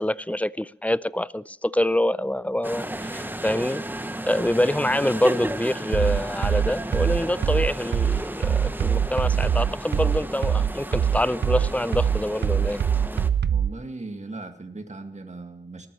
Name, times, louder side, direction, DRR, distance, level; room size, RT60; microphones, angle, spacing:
voice 1, 0.0-3.8 4.2-12.8, left 1 dB, 10° left, 0.4 m, -26 dB
sound 1, 2.6-13.3, right 1 dB, 10° right, 1.0 m, -34 dB
sound 2, 5.9-13.8, right 8 dB, 75° right, 0.4 m, -23 dB
voice 2, 13.4-15.9, right 2 dB, 40° right, 2.0 m, -38 dB
18.5 x 14.0 x 3.1 m
wide cardioid pair, 65°, 18 cm